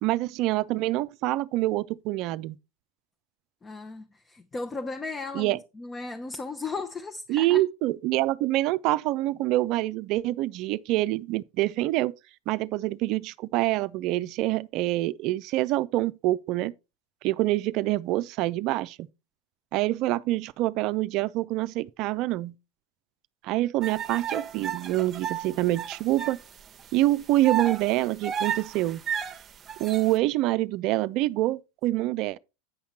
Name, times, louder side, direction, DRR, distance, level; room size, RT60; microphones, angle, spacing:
voice 1, 0.0-2.6 5.3-5.6 7.3-12.1 12.5-16.7 17.2-19.0 19.7-22.5 23.4-26.4 26.9-29.0 29.8-32.4, right 17 dB, 50° right, 0.5 m, -26 dB
voice 2, 3.6-7.6, left 3 dB, 20° left, 0.8 m, -36 dB
sound 1, 23.8-26.4 26.8-26.9 27.4-30.1, right 8 dB, 30° right, 0.9 m, -32 dB
9.4 x 5.7 x 4.2 m
hypercardioid pair, 85°, 0 cm